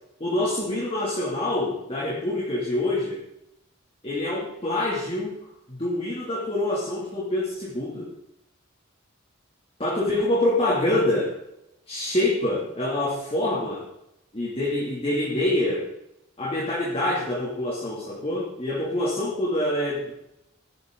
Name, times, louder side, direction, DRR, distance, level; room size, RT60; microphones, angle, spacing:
voice 1, 0.2-3.2 4.0-5.3 5.7-8.1 9.8-11.3 11.9-13.8 14.3-15.9 16.4-20.1, left 1 dB, 30° left, -4 dB, 2.8 m, -26 dB
15.5 x 12.5 x 3.9 m, 0.84 s
head